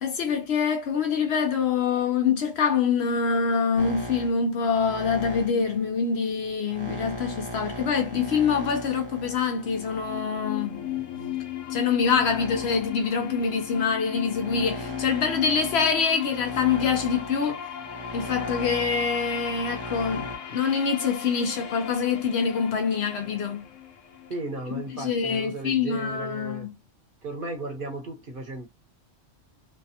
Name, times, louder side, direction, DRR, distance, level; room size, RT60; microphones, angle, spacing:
voice 1, 0.0-10.8 11.7-17.6 18.1-23.6 24.9-26.7, left 6 dB, 65° left, 0.8 m, -25 dB
sound 1, 3.8-11.1 11.8-20.4, right 1 dB, 25° right, 0.7 m, -39 dB
sound 2, 9.3-25.3, left 10 dB, 85° left, 1.0 m, -37 dB
voice 2, 24.3-26.7 27.2-28.7, right 2 dB, 50° right, 1.0 m, -35 dB
3.2 x 2.2 x 2.7 m
omnidirectional pair, 1.3 m